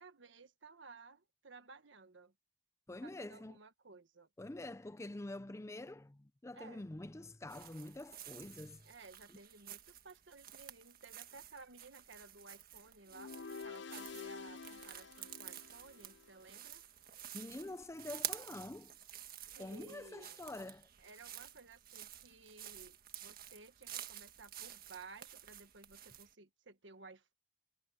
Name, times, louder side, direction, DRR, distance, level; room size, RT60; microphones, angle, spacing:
voice 1, 0.0-2.3 3.0-4.3 6.5-6.9 8.8-13.4 13.6-16.8 19.5-20.4 21.0-27.3, right 3 dB, 70° right, 1.5 m, -56 dB
voice 2, 2.9-3.6 4.4-8.8 17.3-18.9 19.6-20.9, left 2 dB, 15° left, 0.5 m, -46 dB
sound 1, 7.5-26.3, right 11 dB, 50° right, 1.6 m, -50 dB
sound 2, 13.1-16.3, left 5 dB, 65° left, 0.7 m, -49 dB
head